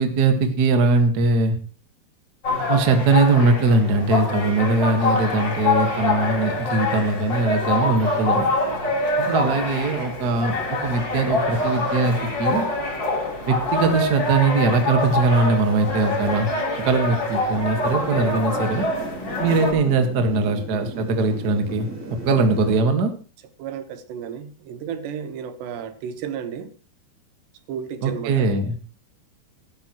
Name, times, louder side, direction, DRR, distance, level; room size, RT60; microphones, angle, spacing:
voice 1, 0.0-1.6 2.7-8.4 9.2-12.7 13.5-16.5 16.8-18.8 19.4-21.9 22.2-23.1 28.0-28.7, right 3 dB, 65° right, 6 dB, 0.9 m, -21 dB
sound 1, 2.4-19.7, left 2 dB, 25° left, 3.9 m, -25 dB
sound 2, 17.8-22.8, right 2 dB, 35° right, 2.1 m, -35 dB
voice 2, 23.6-26.7 27.7-28.5, right 8 dB, 90° right, 10 dB, 3.5 m, -33 dB
15.5 x 12.5 x 3.0 m, 0.37 s
omnidirectional pair, 4.8 m